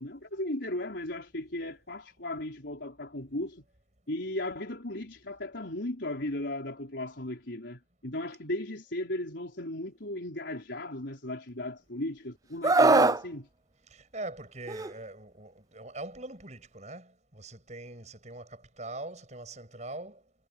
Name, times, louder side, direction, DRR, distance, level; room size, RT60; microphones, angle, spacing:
voice 1, 0.0-3.7 4.1-13.5, left 1 dB, 70° left, 4.3 m, -36 dB
Screaming, 12.6-13.2 14.7-14.9, right 3 dB, 20° right, 0.4 m, -21 dB
voice 2, 13.9-20.2, right 2 dB, 40° right, 7.7 m, -42 dB
head